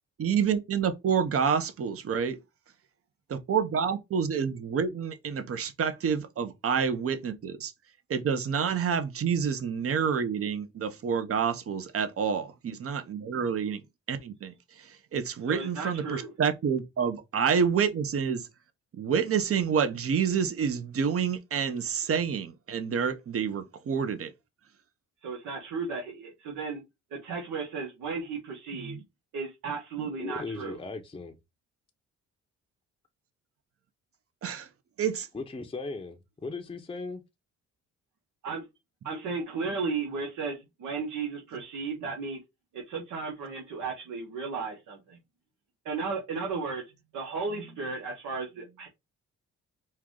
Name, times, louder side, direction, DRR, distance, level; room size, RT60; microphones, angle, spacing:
voice 1, 0.2-2.4 3.5-7.7 8.1-13.8 14.1-18.5 18.9-24.3 28.8-29.0 30.0-30.1 34.4-34.7 35.0-35.3, right 7 dB, 50° right, 0.9 m, -28 dB
voice 2, 15.5-16.3 25.2-26.8 27.1-29.0 29.3-30.8 38.4-38.6 39.0-42.4 42.7-45.2 45.8-46.8 47.1-48.9, right 4 dB, 80° right, 1.3 m, -34 dB
voice 3, 30.2-31.4 35.3-37.2, left 3 dB, 15° left, 0.7 m, -37 dB
4.6 x 2.4 x 3.8 m
cardioid pair, 90°, 30 cm